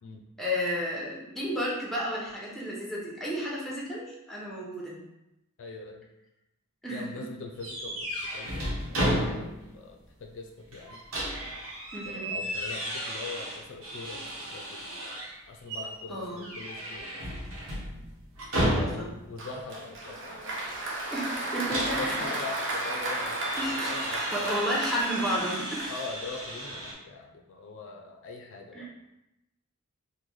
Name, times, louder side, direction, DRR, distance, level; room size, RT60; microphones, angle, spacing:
voice 1, 0.4-5.0 6.8-7.3 11.9-12.4 16.1-16.5 18.6-19.1 21.1-22.2 23.6-24.0 24.3-25.9 28.7-28.9, equal, ahead, -5 dB, 0.7 m, -32 dB
voice 2, 5.6-6.1 6.9-11.0 12.1-17.4 18.8-20.9 21.7-24.7 25.9-28.9, left 4 dB, 65° left, 2 dB, 0.4 m, -42 dB
sound 1, 7.6-9.8 10.1-10.2 10.7-15.3 15.7-16.0 16.4-19.3 21.3-26.9, equal, 85° right, 0.9 m, -34 dB
Applause, 19.4-26.5, right 2 dB, 60° right, 0.6 m, -34 dB
3.0 x 2.2 x 3.7 m, 0.90 s
head